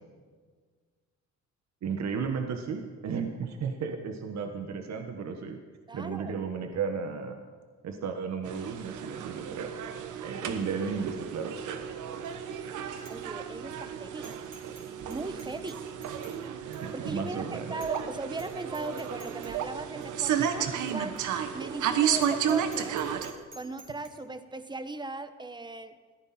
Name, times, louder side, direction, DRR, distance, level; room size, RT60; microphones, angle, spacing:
voice 1, 1.8-5.6 5.9-7.4 7.8-9.7 10.2-11.8 16.8-17.7, right 6 dB, 65° right, 5 dB, 1.4 m, -34 dB
voice 2, 5.9-6.3 12.5-14.3 15.0-15.8 16.9-21.2 21.5-23.0 23.5-25.9, right 2 dB, 15° right, 11 dB, 1.1 m, -38 dB
sound 1, 8.4-23.3, right 8 dB, 80° right, 1.3 m, -33 dB
Bicycle bell, 12.2-12.6 13.0-13.2 13.5-13.6 14.2-14.9 15.1-16.4 16.7-16.8 17.3-17.4 17.8-18.1 18.3-18.5 18.7-19.5 20.0-20.1 20.9-21.0 21.2-21.3 21.7-21.8 22.2-24.1, right 3 dB, 40° right, 3.9 m, -51 dB
21.0 x 14.5 x 4.4 m, 1.5 s
cardioid pair, 90°, 30 cm